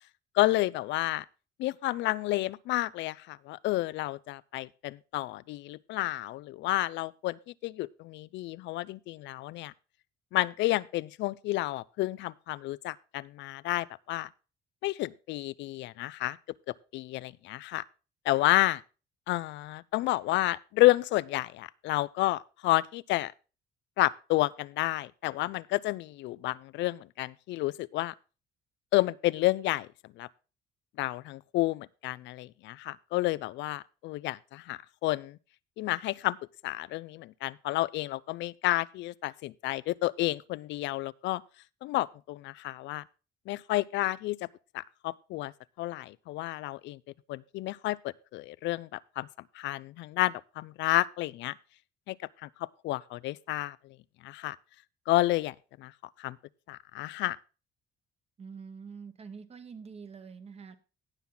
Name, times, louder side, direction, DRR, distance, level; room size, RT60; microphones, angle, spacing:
voice 1, 0.3-1.2 1.6-9.7 10.3-14.3 14.8-16.4 16.7-17.8 18.3-18.8 19.3-23.3 24.0-28.1 28.9-29.9 30.2-30.3 31.0-35.4 35.8-36.4 36.6-41.4 41.8-43.0 43.5-44.5 44.7-45.5 45.8-47.0 47.3-49.3 49.5-51.6 52.1-52.2 52.4-54.0 54.2-54.6 55.1-55.9 56.2-56.4 56.7-57.4, left 17 dB, 85° left, 0.4 m, -30 dB
voice 2, 58.4-60.8, right 5 dB, 35° right, 1.1 m, -45 dB
16.5 x 5.9 x 3.9 m
cardioid pair, 135°, 18 cm